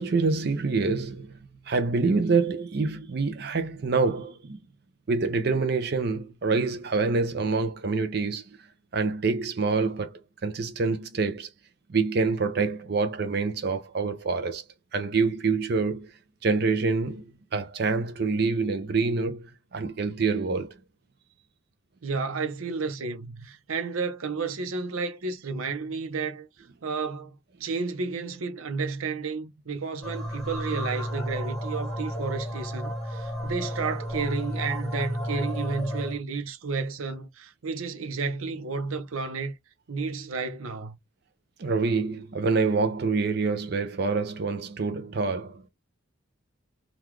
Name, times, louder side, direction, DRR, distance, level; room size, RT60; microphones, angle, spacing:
voice 1, 0.0-1.4 1.7-4.6 5.1-8.6 8.9-11.5 11.9-14.6 14.9-16.1 16.4-20.8 41.6-45.6, right 4 dB, 50° right, 0.5 m, -26 dB
voice 2, 22.0-26.5 26.8-39.5 39.9-41.0, right 4 dB, 90° right, 0.7 m, -32 dB
sound 1, 30.0-36.2, equal, 5° left, 1.3 m, -32 dB
3.7 x 2.3 x 3.0 m
head